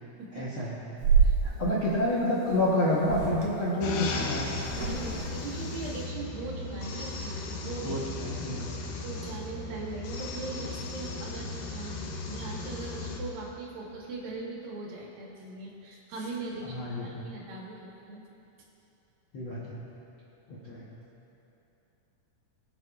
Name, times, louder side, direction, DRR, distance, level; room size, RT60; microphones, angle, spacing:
voice 1, 0.3-0.7 1.4-4.5 7.8-8.7 16.6-17.2 19.3-19.8 20.5-20.8, left 1 dB, 65° left, -7 dB, 1.2 m, -29 dB
sound 1, 1.0-1.4 2.5-2.6 3.0-3.4 4.6-5.3, right 6 dB, 65° right, 2.8 m, -25 dB
voice 2, 1.2-1.7 4.7-8.1 9.0-16.8 17.0-18.2, right 3 dB, 85° right, -3 dB, 3.3 m, -40 dB
sound 2, 3.8-13.2, left 3 dB, 85° left, 2.7 m, -36 dB
21.5 x 8.2 x 2.4 m, 3.0 s
omnidirectional pair, 4.0 m